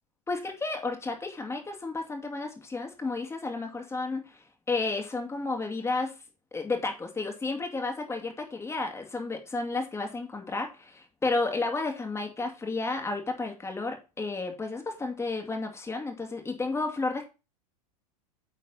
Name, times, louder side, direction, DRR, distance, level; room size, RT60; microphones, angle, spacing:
voice 1, 0.3-6.2 6.5-17.3, left 3 dB, 15° left, 3 dB, 2.1 m, -32 dB
9.3 x 4.1 x 5.5 m, 0.30 s
hypercardioid pair, 110°, 20 cm